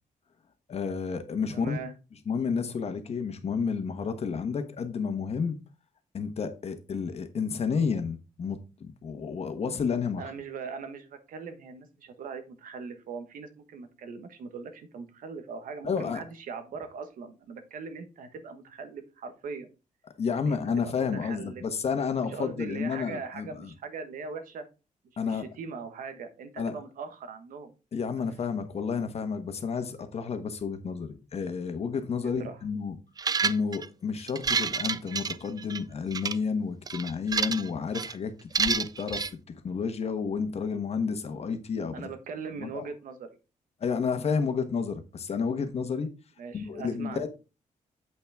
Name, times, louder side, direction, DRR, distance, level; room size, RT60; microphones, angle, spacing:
voice 1, 0.7-1.8 2.3-5.6 6.1-10.2 15.8-16.2 20.2-23.7 25.2-25.4 26.6-26.7 27.9-32.9 33.4-39.2 39.6-42.1 42.6-42.9 43.8-46.1 46.5-47.3, left 5 dB, 50° left, 1.3 m, -31 dB
voice 2, 1.5-1.9 10.2-19.7 20.3-21.6 22.2-24.6 25.2-27.7 28.2-28.3 32.2-32.6 41.9-43.4 46.4-47.3, right 5 dB, 85° right, 1.4 m, -40 dB
sound 1, 33.2-33.9 34.3-35.8 36.1-36.4 36.9-37.7 37.9-38.1 38.6-39.3, right 5 dB, 30° right, 0.4 m, -28 dB
8.0 x 5.8 x 3.5 m
wide cardioid pair, 125°, 14 cm